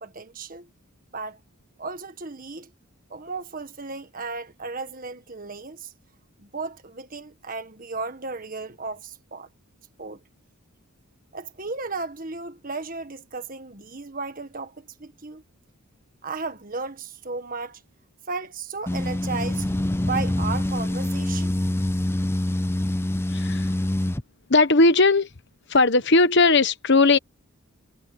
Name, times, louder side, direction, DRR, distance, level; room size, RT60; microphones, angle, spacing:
voice 1, 0.0-0.7 1.1-1.4 1.8-2.7 3.1-5.9 6.4-9.5 10.0-10.2 11.3-15.4 16.2-17.8 18.3-19.7 20.0-21.5, right 4 dB, 40° right, 1.6 m, -34 dB
sound 1, 18.9-24.2, left 1 dB, 10° left, 0.5 m, -25 dB
voice 2, 23.3-23.7 24.5-25.3 25.7-27.2, left 3 dB, 50° left, 1.1 m, -18 dB
head